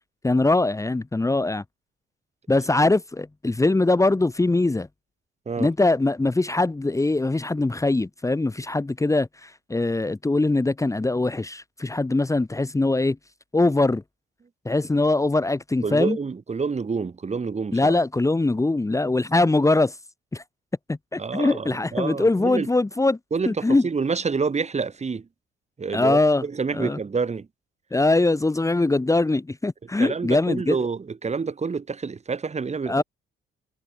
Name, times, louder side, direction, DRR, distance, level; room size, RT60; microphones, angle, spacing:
voice 1, 0.2-1.6 2.5-4.9 5.6-13.2 13.5-14.0 14.7-16.2 17.7-19.9 20.3-20.4 20.9-23.2 23.5-23.9 25.9-26.4 26.7-27.0 27.9-30.8 32.9-33.0, left 2 dB, 15° left, 2.1 m, -22 dB
voice 2, 15.8-17.9 21.2-22.7 23.3-25.3 25.8-27.5 30.0-33.0, right 5 dB, 35° right, 4.6 m, -28 dB
cardioid pair, 90°, 20 cm